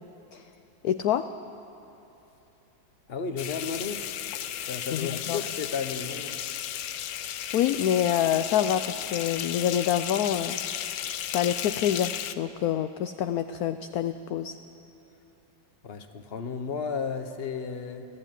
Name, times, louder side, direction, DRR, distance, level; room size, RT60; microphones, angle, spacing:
voice 1, 0.8-1.3 4.9-5.4 7.1-10.6 11.3-14.6, left 10 dB, 65° left, 10 dB, 1.0 m, -27 dB
voice 2, 3.1-4.1 4.7-6.4 15.8-18.1, left 5 dB, 35° left, 8 dB, 1.2 m, -33 dB
sound 1, 3.4-12.3, left 11 dB, 85° left, 1.5 m, -34 dB
24.5 x 15.5 x 9.3 m, 3.0 s
omnidirectional pair, 2.0 m